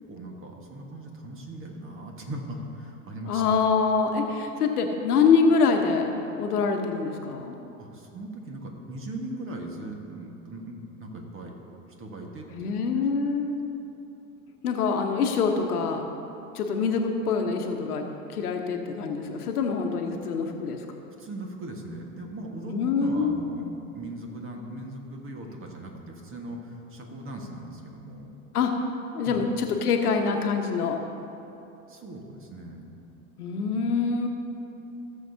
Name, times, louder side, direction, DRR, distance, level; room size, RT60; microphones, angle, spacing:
voice 1, 0.1-3.4 7.8-11.5 12.0-12.7 20.0-20.1 21.2-28.3 29.2-29.4 31.9-32.8, right 1 dB, 30° right, 1 dB, 1.5 m, -39 dB
voice 2, 3.3-6.1 6.4-7.6 12.5-13.5 14.6-16.0 16.5-20.8 22.6-23.3 28.5-28.7 29.1-31.0 33.4-34.3, left 5 dB, 80° left, 4 dB, 1.1 m, -25 dB
17.5 x 6.9 x 2.8 m, 2.9 s
hypercardioid pair, 90°, 45 cm